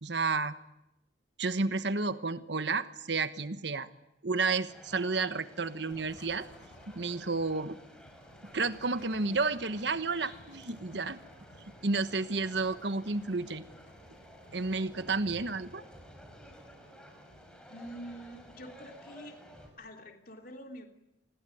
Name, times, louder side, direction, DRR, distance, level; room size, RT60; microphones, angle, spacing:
voice 1, 0.0-0.5 1.4-3.9 4.2-6.5 6.9-7.8 8.5-11.2 11.8-13.6 14.5-15.8, right 3 dB, 70° right, 12 dB, 1.3 m, -31 dB
sound 1, 4.7-19.7, equal, 5° left, 5.7 m, -53 dB
sound 2, 5.9-15.7, left 1 dB, 85° left, 5.8 m, -58 dB
voice 2, 17.7-19.4 19.8-20.9, equal, 50° left, 4 dB, 3.3 m, -46 dB
27.5 x 21.0 x 9.3 m, 0.88 s
head